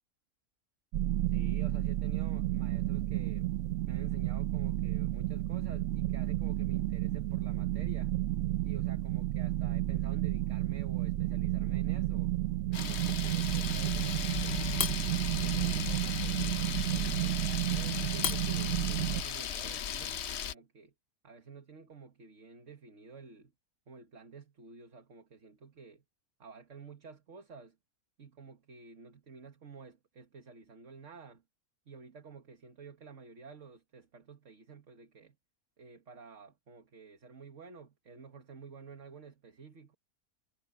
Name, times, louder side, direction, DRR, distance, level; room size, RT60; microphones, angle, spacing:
sound 1, 0.9-19.2, right 15 dB, 65° right, 0.9 m, -32 dB
voice 1, 1.3-3.5 3.9-8.1 8.6-12.3 12.7-15.0 15.2-17.4 17.7-20.9 21.2-23.5 23.9-26.0 26.4-27.8 28.2-31.4 31.9-35.4 35.8-39.9, right 5 dB, 50° right, 1.9 m, -51 dB
Camera, 12.7-20.5, left 8 dB, 55° left, 0.8 m, -36 dB
omnidirectional pair, 1.7 m